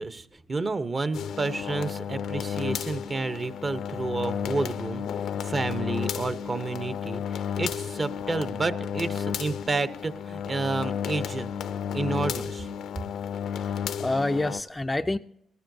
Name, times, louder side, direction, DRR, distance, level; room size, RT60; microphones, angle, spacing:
voice 1, 0.0-5.0 5.4-11.5 11.9-12.7, right 3 dB, 30° right, 13 dB, 0.8 m, -30 dB
sound 1, 1.1-14.6, left 7 dB, 70° left, 0.5 m, -32 dB
voice 2, 13.6-15.2, left 2 dB, 15° left, 9 dB, 0.4 m, -28 dB
16.5 x 14.0 x 2.7 m, 0.77 s
cardioid pair, 90°, 0 cm